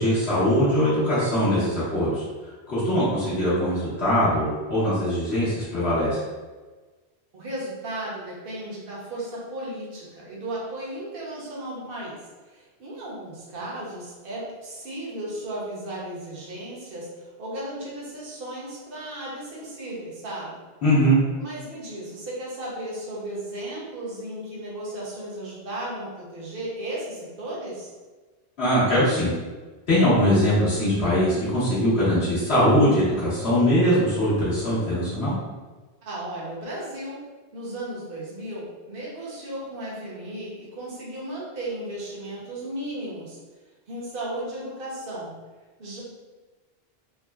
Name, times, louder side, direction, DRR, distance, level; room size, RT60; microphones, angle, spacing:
voice 1, 0.0-2.2 2.7-6.2 20.8-21.2 28.6-29.3 29.9-35.3, equal, 75° left, -11 dB, 1.4 m, -21 dB
voice 2, 7.3-12.2 12.4-20.6 21.4-27.9 36.1-37.2 37.5-43.4 43.9-45.3 45.8-46.0, right 1 dB, 60° right, -6 dB, 1.0 m, -35 dB
3.6 x 2.0 x 2.3 m, 1.3 s
omnidirectional pair, 1.1 m